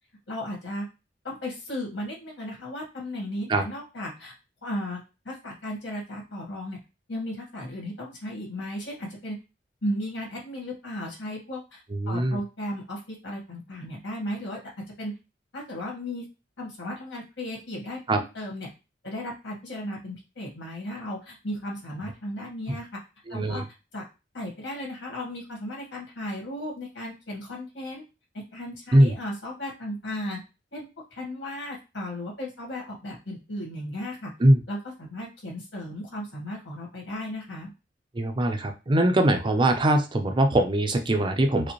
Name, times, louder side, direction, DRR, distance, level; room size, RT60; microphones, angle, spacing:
voice 1, 0.3-0.9 1.2-4.3 4.6-6.8 7.1-9.4 9.8-14.6 15.0-15.2 15.5-16.3 16.6-18.7 19.0-23.0 23.3-23.6 23.9-24.1 24.3-28.0 28.3-30.4 30.7-34.3 34.7-37.7, left 1 dB, 80° left, -2 dB, 1.8 m, -35 dB
voice 2, 11.9-12.4 18.1-18.2 22.7-22.8 23.3-23.6 28.9-29.1 34.4-34.6 38.1-41.7, right 1 dB, 25° right, 5 dB, 0.5 m, -22 dB
4.9 x 2.1 x 3.0 m, 0.28 s
head